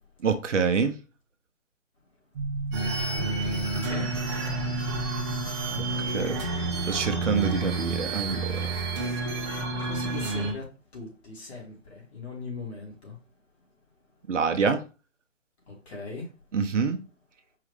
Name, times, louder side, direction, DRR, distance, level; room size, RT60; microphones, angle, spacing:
voice 1, 0.2-1.0 6.0-8.7 9.0-9.2 14.3-14.8 16.5-17.0, right 5 dB, 70° right, 0.9 m, -27 dB
sound 1, 2.4-7.5, right 3 dB, 40° right, 0.7 m, -34 dB
sound 2, 2.7-10.5, right 3 dB, 20° right, 1.1 m, -30 dB
voice 2, 3.9-4.2 5.6-5.8 7.1-7.5 9.7-13.2 15.7-16.3, left 3 dB, 55° left, 2.7 m, -39 dB
4.7 x 3.1 x 3.4 m
figure-of-eight pair, 135°, 39 cm